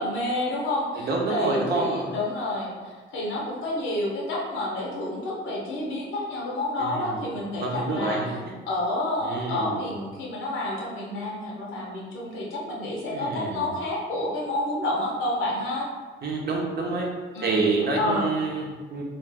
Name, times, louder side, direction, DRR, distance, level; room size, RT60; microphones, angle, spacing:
voice 1, 0.0-8.3 8.6-15.9 17.3-17.6 18.0-18.3, left 1 dB, 80° left, -3 dB, 0.9 m, -29 dB
voice 2, 1.0-2.1 6.8-7.2 7.5-8.3 9.2-9.9 13.1-13.7 16.2-17.1 17.4-19.0, right 3 dB, 55° right, -1 dB, 0.7 m, -27 dB
2.5 x 2.5 x 3.3 m, 1.4 s
cardioid pair, 90°, 20 cm